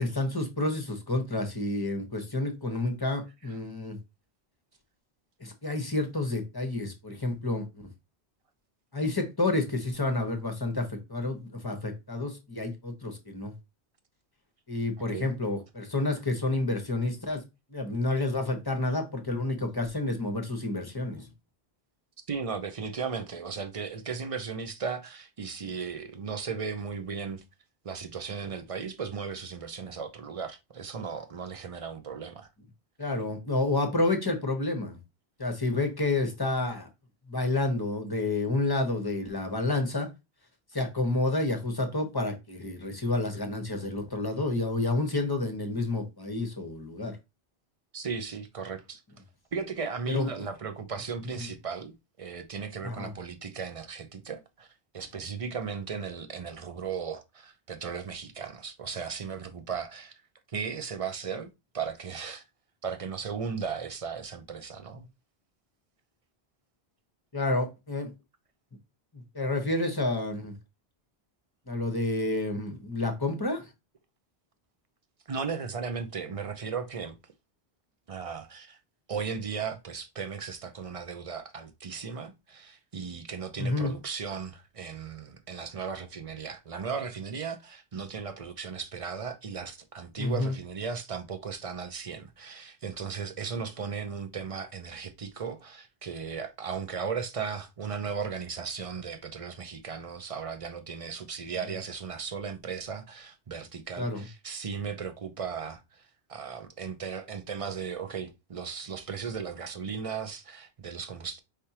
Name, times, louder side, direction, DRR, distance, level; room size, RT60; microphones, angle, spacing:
voice 1, 0.0-4.0 5.4-7.9 8.9-13.5 14.7-17.4 17.7-21.3 33.0-35.0 35.4-36.9 37.3-40.1 40.7-47.2 50.1-50.3 51.3-51.5 52.8-53.1 67.3-68.1 69.1-70.5 71.7-73.7 83.6-83.9 90.2-90.6 104.0-104.2, left 2 dB, 20° left, 1.0 m, -29 dB
voice 2, 22.3-27.4 27.8-32.5 47.9-49.0 49.5-54.7 54.9-60.2 60.5-62.4 62.8-65.1 75.3-77.2 78.1-78.8 79.1-106.0 106.3-111.4, right 6 dB, 35° right, 0.7 m, -36 dB
5.0 x 3.4 x 2.8 m
omnidirectional pair, 1.1 m